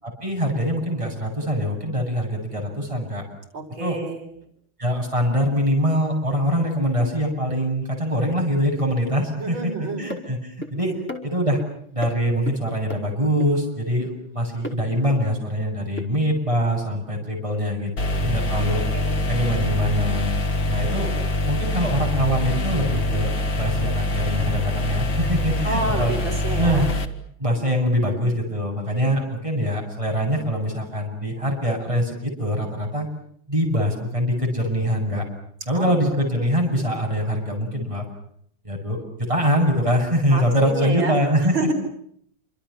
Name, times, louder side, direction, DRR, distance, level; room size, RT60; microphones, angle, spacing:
voice 1, 0.0-3.2 3.8-4.0 4.8-10.9 11.2-11.6 11.9-18.8 19.3-20.3 20.7-21.1 21.5-23.3 23.6-26.1 26.5-26.9 27.4-33.1 33.5-35.2 35.7-38.0 38.6-41.7, equal, 15° right, 1 dB, 8.1 m, -23 dB
voice 2, 3.5-4.2 9.4-10.0 10.8-11.0 18.5-18.7 18.9-19.4 25.6-26.9 35.7-36.9 40.3-41.7, right 2 dB, 75° right, 3 dB, 5.8 m, -30 dB
sound 1, 10.1-10.2 10.6-10.7 11.1-11.7 12.0-12.1 12.5-12.6 12.9-13.0 13.4-13.5 14.6-14.8 16.0-16.1, left 1 dB, 5° left, 4.8 m, -33 dB
sound 2, 18.0-27.1, left 2 dB, 65° left, 2.9 m, -24 dB
28.5 x 27.0 x 7.2 m, 0.67 s
omnidirectional pair, 2.2 m